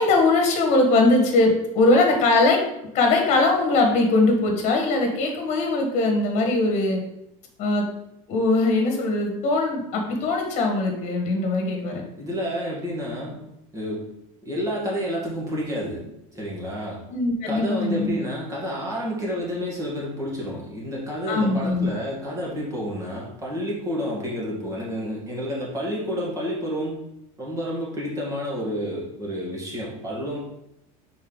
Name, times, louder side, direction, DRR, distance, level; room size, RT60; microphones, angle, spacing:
voice 1, 0.0-2.6 2.9-7.0 7.6-7.9 8.3-12.0 17.1-18.2 21.3-21.9, left 2 dB, 40° left, 2 dB, 1.6 m, -21 dB
voice 2, 12.2-13.4 13.7-14.1 14.4-16.1 16.3-17.0 17.4-27.0 27.4-30.4, equal, 20° right, -4 dB, 1.9 m, -30 dB
5.5 x 4.3 x 4.0 m, 0.83 s
supercardioid pair, 145°, 17 cm